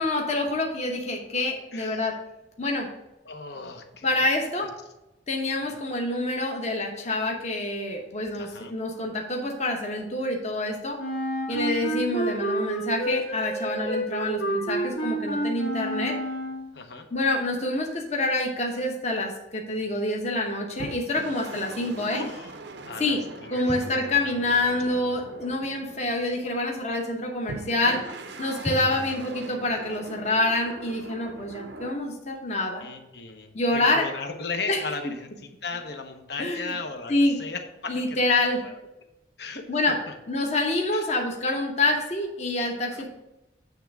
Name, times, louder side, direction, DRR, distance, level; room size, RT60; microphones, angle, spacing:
voice 1, 0.0-2.2 2.6-2.9 4.0-4.7 5.3-11.0 11.5-16.2 17.1-22.2 23.0-23.2 23.5-28.0 28.4-32.9 33.5-34.0 34.7-34.8 36.4-36.7 37.1-37.4 37.9-38.6 39.7-40.0 40.3-43.1, left 2 dB, 35° left, 1 dB, 1.0 m, -27 dB
voice 2, 1.7-2.1 3.2-4.1 4.6-4.7 5.6-5.8 8.3-8.7 11.5-11.8 16.7-17.1 21.7-22.6 22.8-23.7 24.0-24.7 24.9-25.2 27.7-28.1 29.3-29.4 32.8-38.4 38.6-38.7 39.4-40.1 40.9-41.0 42.9-43.1, left 4 dB, 60° left, 5 dB, 0.9 m, -37 dB
Wind instrument woodwind instrument, 11.0-16.7, right 1 dB, 75° left, 2.2 m, -29 dB
sound 1, 20.8-26.7 27.5-32.0, right 2 dB, 65° right, 0.6 m, -42 dB
sound 2, 23.7-25.3 28.6-29.2, equal, 5° left, 0.5 m, -37 dB
8.6 x 3.5 x 6.0 m, 0.94 s
head